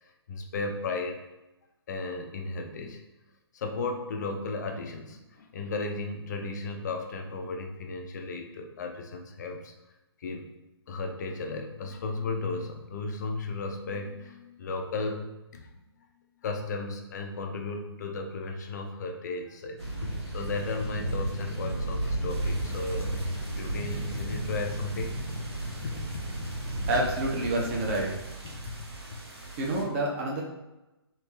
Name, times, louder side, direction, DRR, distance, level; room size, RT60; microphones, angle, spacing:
voice 1, 0.0-1.2 1.9-3.0 3.5-9.7 10.2-10.5 10.9-15.7 16.4-23.2 23.5-25.2 25.8-26.2 29.3-29.5, left 3 dB, 40° left, 4 dB, 0.5 m, -35 dB
sound 1, 19.8-28.2, right 1 dB, 85° right, 1.4 m, -33 dB
sound 2, 22.3-29.8, right 3 dB, 70° right, 1.0 m, -45 dB
voice 2, 26.9-28.1 29.6-30.4, right 1 dB, 30° right, -2 dB, 0.8 m, -28 dB
3.3 x 2.8 x 3.2 m, 0.98 s
figure-of-eight pair, 135°, 14 cm